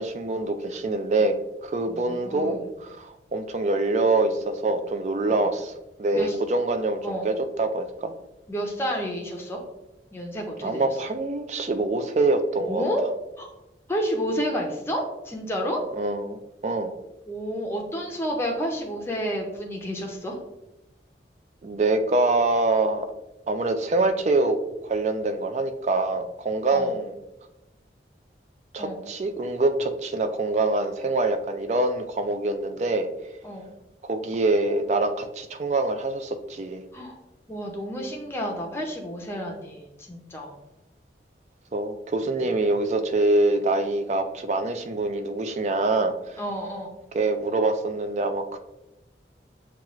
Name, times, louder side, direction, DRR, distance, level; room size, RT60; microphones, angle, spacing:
voice 1, 0.0-1.4 1.6-5.7 6.0-8.1 10.6-12.8 15.9-16.9 21.6-23.1 23.5-24.6 24.8-27.2 28.7-33.1 34.0-36.8 41.7-46.4 47.1-48.6, right 2 dB, 40° right, 8 dB, 0.3 m, -25 dB
voice 2, 1.8-2.6 6.1-6.4 7.0-7.2 8.5-9.6 10.1-10.8 12.6-13.0 13.4-13.5 13.9-15.8 17.3-20.4 26.7-26.9 28.8-29.0 33.4-33.7 36.9-37.2 37.5-40.6 42.4-42.5 46.4-46.9, equal, 15° left, 0 dB, 0.6 m, -30 dB
5.9 x 2.4 x 3.0 m, 0.93 s
head